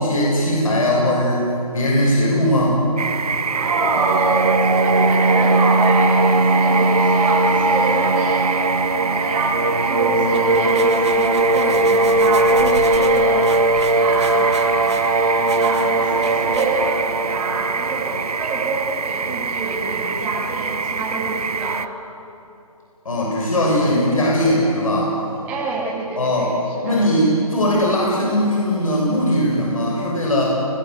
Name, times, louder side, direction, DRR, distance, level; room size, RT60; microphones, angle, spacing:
voice 1, 0.0-1.5 1.7-2.8 23.0-25.1 26.2-26.5 26.8-30.4, equal, 65° left, -3 dB, 7.3 m, -19 dB
sound 1, 3.0-21.9, right 5 dB, 85° right, 1.0 m, -26 dB
voice 2, 3.5-8.5 8.9-13.5 14.0-15.1 15.6-21.9 25.5-27.0, right 3 dB, 5° right, -3 dB, 2.3 m, -27 dB
sound 2, 3.5-19.3, right 2 dB, 70° right, 4.0 m, -19 dB
sound 3, 10.3-17.1, right 4 dB, 45° right, 2.0 m, -35 dB
30.0 x 20.5 x 8.1 m, 2.8 s
hypercardioid pair, 180°, 19 cm